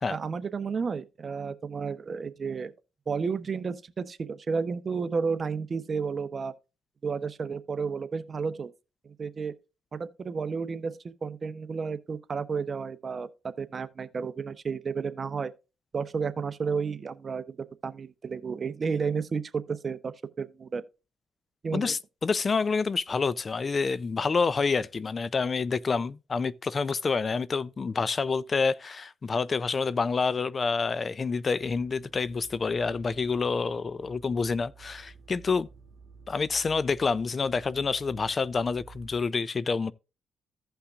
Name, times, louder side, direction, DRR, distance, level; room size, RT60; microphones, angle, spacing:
voice 1, 0.1-2.7 3.1-6.5 7.0-8.7 9.2-9.5 9.9-15.5 15.9-17.6 17.8-20.8 21.6-21.9, right 5 dB, 40° right, 0.7 m, -32 dB
voice 2, 21.7-35.7 36.3-39.9, left 4 dB, 35° left, 0.4 m, -28 dB
sound 1, 31.6-39.2, right 4 dB, 60° right, 1.5 m, -52 dB
16.0 x 5.7 x 2.4 m
cardioid pair, 90°, 0 cm